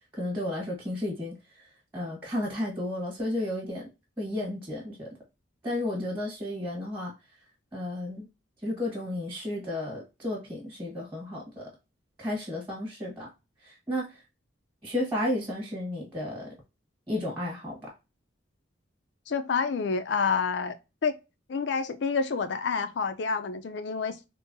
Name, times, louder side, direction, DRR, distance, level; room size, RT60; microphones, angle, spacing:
voice 1, 0.1-1.7 1.9-3.9 4.2-5.1 5.6-7.1 7.7-8.3 8.6-11.7 12.2-13.3 13.6-14.2 14.8-16.5 17.1-17.9, left 1 dB, 15° right, 1.2 m, -33 dB
voice 2, 19.3-20.8 21.0-21.1 21.5-24.3, left 5 dB, 60° left, 0.4 m, -28 dB
3.6 x 2.0 x 2.5 m
head